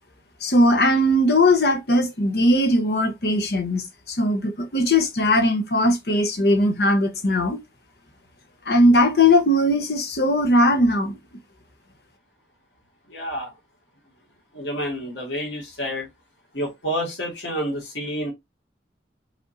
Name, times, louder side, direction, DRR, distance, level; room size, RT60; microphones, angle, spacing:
voice 1, 0.4-7.6 8.7-11.1, left 1 dB, 60° left, 1.0 m, -19 dB
voice 2, 13.1-13.5 14.5-16.1 16.5-18.3, equal, 90° left, 2.1 m, -29 dB
5.2 x 3.5 x 2.7 m
head